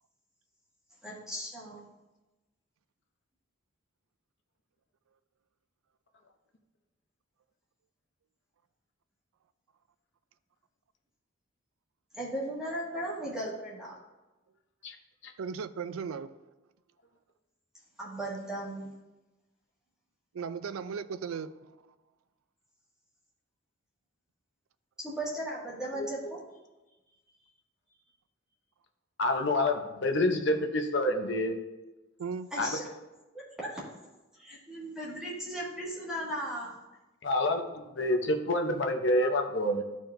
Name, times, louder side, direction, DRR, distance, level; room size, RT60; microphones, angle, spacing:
voice 1, 1.0-1.9 12.1-14.0 18.0-18.9 25.0-26.4 32.5-32.9 33.3-33.8 34.3-36.8, right 1 dB, 5° right, -7 dB, 1.8 m, -37 dB
voice 2, 15.4-16.3 20.3-21.7 32.2-32.5, right 6 dB, 80° right, 14 dB, 0.4 m, -36 dB
voice 3, 26.0-26.3 29.2-31.6 32.6-32.8 37.2-39.8, left 1 dB, 55° left, 4 dB, 0.7 m, -28 dB
12.0 x 4.6 x 2.6 m, 1.1 s
head